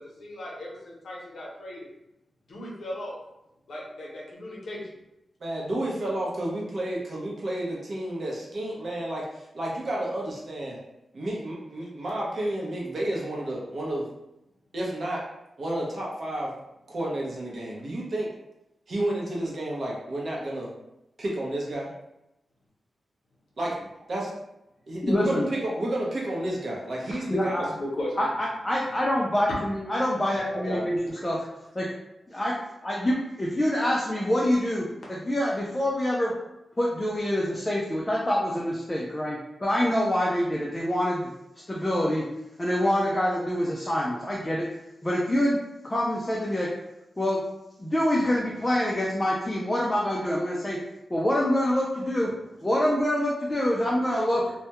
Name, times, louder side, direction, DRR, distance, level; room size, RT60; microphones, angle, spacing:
voice 1, 0.0-1.9 2.5-3.2 3.7-4.8 27.1-27.2 27.8-28.1 29.5-29.6 30.5-30.8, left 1 dB, 65° left, -4 dB, 0.7 m, -36 dB
voice 2, 5.4-10.8 11.1-14.0 14.7-15.2 15.6-16.5 16.9-18.3 18.9-20.7 21.2-21.9 23.6-24.3 24.9-27.6, right 1 dB, 50° right, -3 dB, 0.6 m, -31 dB
voice 3, 25.0-25.5 27.3-27.7 28.2-31.4 31.7-31.9 32.3-32.6 32.8-36.3 36.8-41.3 41.7-42.3 42.6-44.7 45.0-45.6 45.8-46.7 47.2-47.4 47.8-50.8 51.1-52.3 52.6-54.5, left 1 dB, 15° left, -3 dB, 0.3 m, -26 dB
2.2 x 2.1 x 2.8 m, 0.90 s
wide cardioid pair, 150°, 0 cm